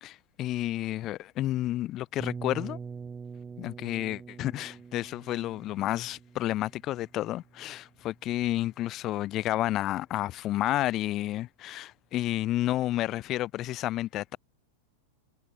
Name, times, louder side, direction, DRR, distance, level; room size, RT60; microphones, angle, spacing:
voice 1, 0.0-2.8 3.6-14.4, left 14 dB, 35° left, 0.3 m, -31 dB
sound 1, 2.2-8.0, right 5 dB, 15° right, 0.9 m, -44 dB
figure-of-eight pair, 90°, 0 cm